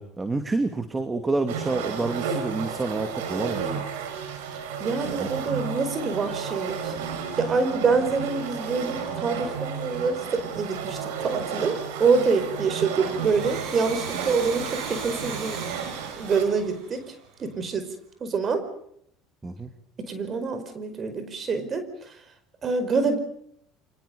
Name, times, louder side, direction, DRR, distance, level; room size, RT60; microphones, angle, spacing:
voice 1, 0.0-3.8 5.0-5.6 19.4-19.7, right 3 dB, 20° right, 8 dB, 2.6 m, -29 dB
sound 1, 1.5-16.6, right 6 dB, 80° right, 5.0 m, -33 dB
voice 2, 4.8-6.9 7.4-15.7 16.2-17.1 17.4-17.9 18.2-18.7 20.0-22.1 22.6-23.2, right 4 dB, 40° right, 10 dB, 5.0 m, -26 dB
Domestic sounds home sounds, 13.1-17.6, right 5 dB, 65° right, 7.9 m, -37 dB
30.0 x 26.0 x 5.3 m, 0.67 s
hypercardioid pair, 80°, 0 cm